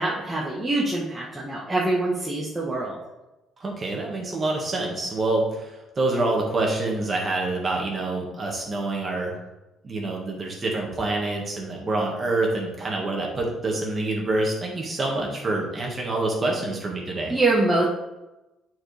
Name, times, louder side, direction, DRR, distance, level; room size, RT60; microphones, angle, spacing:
voice 1, 0.0-3.0 17.3-17.9, right 2 dB, 15° right, -6 dB, 1.2 m, -24 dB
voice 2, 3.6-9.3 9.8-17.3, right 2 dB, 30° right, -1 dB, 1.8 m, -26 dB
8.7 x 4.6 x 3.4 m, 1.0 s
cardioid pair, 110°, 0 cm